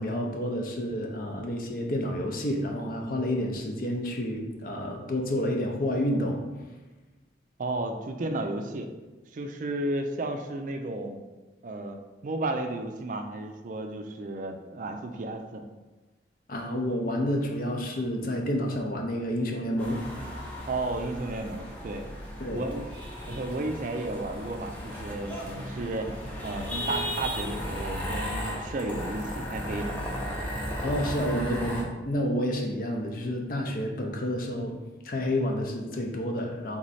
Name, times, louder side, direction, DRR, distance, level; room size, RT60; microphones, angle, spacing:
voice 1, 0.0-6.4 16.5-20.0 22.4-22.7 30.8-34.8 35.0-36.8, equal, 50° left, 2 dB, 0.6 m, -29 dB
voice 2, 7.6-8.9 9.3-11.2 11.6-15.6 20.7-22.0 22.5-22.9 23.3-26.1 26.4-29.9, right 2 dB, 45° right, 5 dB, 0.4 m, -33 dB
sound 1, 19.8-31.8, equal, 10° left, 0.6 m, -35 dB
3.6 x 3.1 x 4.1 m, 1.2 s
head